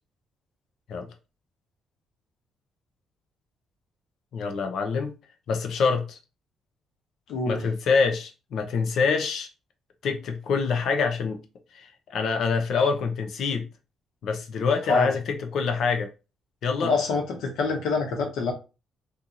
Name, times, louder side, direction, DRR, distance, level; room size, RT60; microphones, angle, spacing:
voice 1, 4.3-5.2 5.5-6.2 7.5-9.5 10.0-11.4 11.7-13.6 14.2-16.1 16.6-16.9, left 5 dB, 70° left, 0.8 m, -26 dB
voice 2, 7.3-7.6 14.9-15.1 16.8-18.5, left 4 dB, 85° left, 1.2 m, -25 dB
3.0 x 2.6 x 3.9 m
cardioid pair, 90°, 0 cm